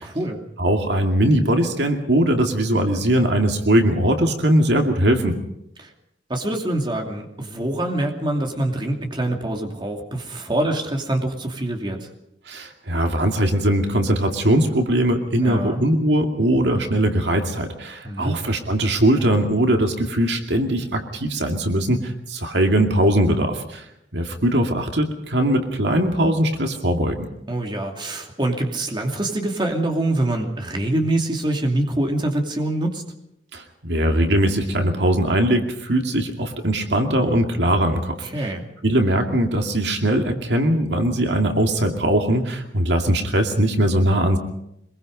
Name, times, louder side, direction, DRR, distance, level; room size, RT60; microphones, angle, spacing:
voice 1, 0.0-0.4 5.8-5.9 6.3-12.1 15.4-15.8 18.0-18.4 27.5-33.0 38.2-38.6, right 1 dB, 25° right, 2 dB, 2.7 m, -25 dB
voice 2, 0.6-5.4 12.5-23.8 24.1-27.2 33.5-38.5 38.8-44.4, right 1 dB, 70° right, 4 dB, 2.4 m, -20 dB
24.0 x 22.0 x 5.3 m, 0.79 s
head